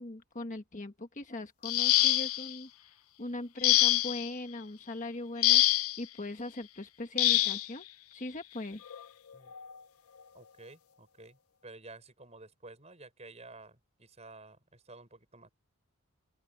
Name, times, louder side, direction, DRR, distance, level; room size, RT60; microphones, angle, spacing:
voice 1, 0.0-2.7 3.2-7.8 8.1-8.8, left 1 dB, 35° left, 1.4 m, -40 dB
sound 1, 1.6-2.5 3.6-4.3 5.4-6.0 7.2-7.7 8.9-9.0 9.5-9.7, left 15 dB, 85° left, 0.6 m, -25 dB
voice 2, 10.3-11.4 11.6-15.5, right 2 dB, 30° right, 6.7 m, -52 dB
open air
head